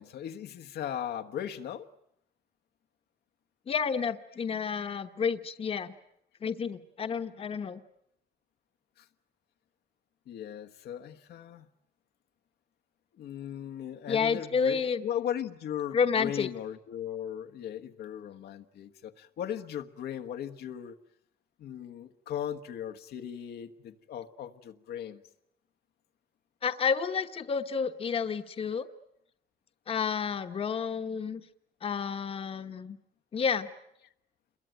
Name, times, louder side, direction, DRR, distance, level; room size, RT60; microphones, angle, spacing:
voice 1, 0.0-1.9 9.0-9.1 10.3-11.7 13.2-21.0 21.6-25.2, left 10 dB, 85° left, 7 dB, 1.4 m, -38 dB
voice 2, 3.7-5.9 6.4-7.8 14.1-15.0 15.9-16.5 26.6-28.9 29.9-31.4 31.8-33.0 33.3-33.7, left 6 dB, 35° left, 8 dB, 1.1 m, -30 dB
28.5 x 22.0 x 9.2 m, 0.78 s
cardioid pair, 165°, 16 cm